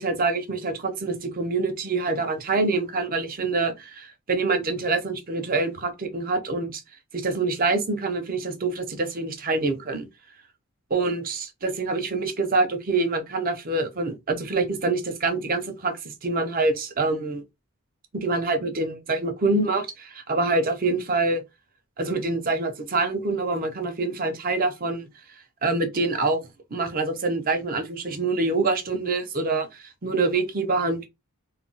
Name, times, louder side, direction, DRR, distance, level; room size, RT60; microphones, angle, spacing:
voice 1, 0.0-6.8 7.1-10.1 10.9-17.4 18.1-21.4 22.0-25.1 25.6-26.4 26.7-31.1, right 3 dB, 40° right, 0.6 m, -25 dB
2.3 x 2.2 x 3.8 m
head